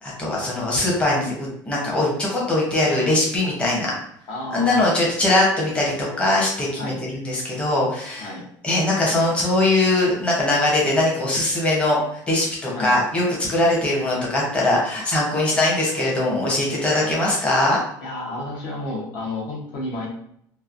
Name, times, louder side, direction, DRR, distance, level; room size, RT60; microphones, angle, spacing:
voice 1, 0.0-3.9 4.5-8.3 8.6-12.0 12.3-17.8, left 2 dB, 15° left, -4 dB, 0.7 m, -21 dB
voice 2, 4.3-4.8 6.8-7.0 8.2-8.4 12.8-12.9 17.0-17.1 18.0-20.1, left 2 dB, 65° left, -2 dB, 0.8 m, -31 dB
3.0 x 2.2 x 2.4 m, 0.70 s
cardioid pair, 150°, 8 cm